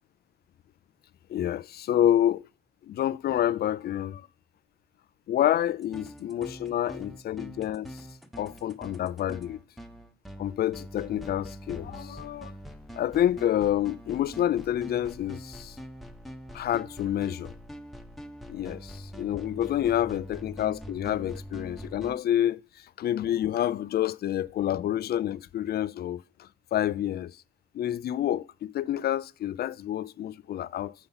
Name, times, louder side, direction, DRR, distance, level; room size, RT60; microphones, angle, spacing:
voice 1, 1.3-2.4 2.9-4.3 5.3-7.9 8.4-9.6 10.4-12.5 12.9-15.8 16.5-17.5 18.5-22.6 23.0-27.4 27.7-30.9, left 11 dB, 55° left, 0.4 m, -28 dB
sound 1, 5.8-22.2, equal, ahead, 0.8 m, -44 dB
6.8 x 5.6 x 5.6 m
cardioid pair, 90°, 20 cm